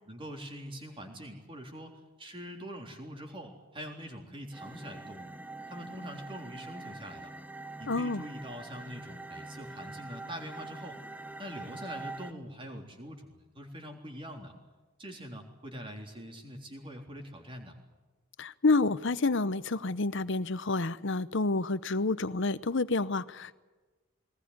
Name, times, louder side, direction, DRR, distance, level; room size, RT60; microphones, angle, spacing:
voice 1, 0.1-1.9 2.2-5.3 5.7-7.3 7.8-11.0 11.4-14.5 15.0-17.8, equal, 25° right, 3 dB, 3.6 m, -44 dB
sound 1, 4.5-12.3, right 2 dB, 5° right, 0.9 m, -44 dB
voice 2, 7.9-8.2 18.4-23.6, left 3 dB, 55° left, 16 dB, 0.8 m, -29 dB
21.0 x 20.0 x 9.6 m, 1.3 s
head